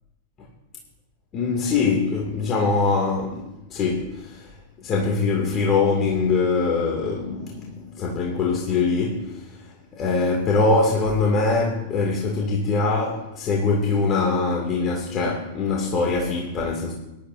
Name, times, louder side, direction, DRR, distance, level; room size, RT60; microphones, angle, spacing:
voice 1, 1.3-4.5 4.8-9.5 9.9-16.9, left 4 dB, 35° left, 2.4 m, -23 dB
20.5 x 12.0 x 2.7 m
hypercardioid pair, 100°, 0 cm